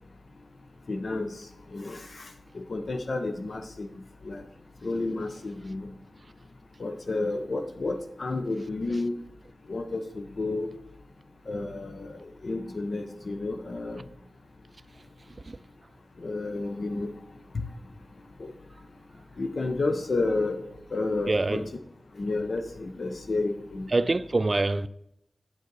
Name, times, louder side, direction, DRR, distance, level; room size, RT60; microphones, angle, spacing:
voice 1, 0.9-1.3 1.7-2.3 2.5-3.9 4.2-4.4 4.8-5.9 6.8-9.2 9.7-10.7 11.5-14.0 16.2-17.1 18.4-18.5 19.4-20.6 20.9-21.6 22.2-23.9, left 2 dB, 70° left, 0.6 m, -31 dB
voice 2, 21.3-21.6 23.9-24.9, right 2 dB, 50° right, 0.3 m, -25 dB
8.7 x 5.2 x 3.9 m
cardioid pair, 40°, 0 cm